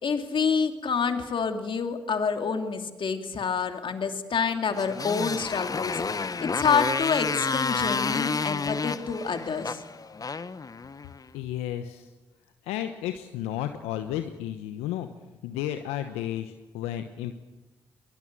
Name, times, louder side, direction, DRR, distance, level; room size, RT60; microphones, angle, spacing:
voice 1, 0.0-9.8, left 5 dB, 55° left, 6 dB, 2.8 m, -28 dB
Motorcycle, 4.7-11.2, left 4 dB, 35° left, 1.1 m, -30 dB
voice 2, 11.3-12.1 12.6-15.1 15.4-17.4, left 12 dB, 80° left, 8 dB, 1.0 m, -32 dB
23.0 x 21.0 x 7.5 m, 1.1 s
hypercardioid pair, 40°, 10 cm